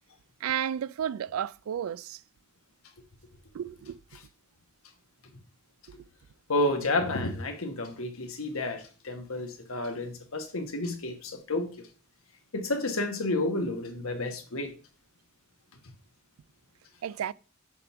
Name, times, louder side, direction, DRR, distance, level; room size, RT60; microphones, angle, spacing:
voice 1, 0.4-2.2 3.5-4.0 17.0-17.3, right 9 dB, 85° right, 0.3 m, -32 dB
voice 2, 6.5-11.9 12.5-14.7, left 2 dB, 85° left, 1.3 m, -31 dB
6.9 x 3.5 x 5.7 m
head